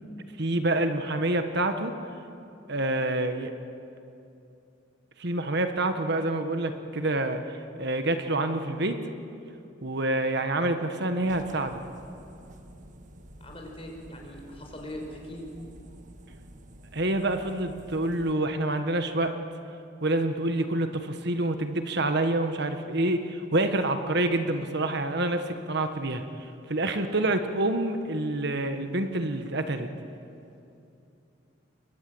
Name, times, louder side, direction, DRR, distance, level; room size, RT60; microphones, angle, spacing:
voice 1, 0.4-1.9 2.7-3.5 5.2-9.0 9.8-11.8 16.9-19.4 20.0-26.2 26.7-29.9, right 2 dB, 60° right, 7 dB, 1.5 m, -27 dB
sound 1, 11.2-18.3, right 1 dB, 40° right, 1.7 m, -50 dB
voice 2, 13.4-15.4, left 1 dB, 30° left, 1 dB, 5.4 m, -41 dB
29.5 x 23.0 x 8.0 m, 2.7 s
head